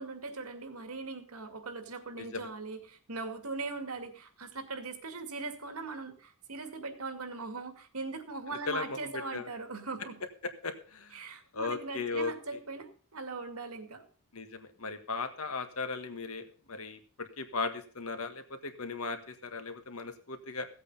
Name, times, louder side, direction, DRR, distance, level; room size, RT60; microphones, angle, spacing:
voice 1, 0.0-10.2 11.1-14.0, right 3 dB, 85° right, 7 dB, 2.2 m, -40 dB
voice 2, 2.2-2.5 8.7-9.5 10.6-11.2 11.5-12.3 14.3-20.7, left 4 dB, 75° left, 8 dB, 1.7 m, -37 dB
16.0 x 8.3 x 5.4 m, 0.41 s
head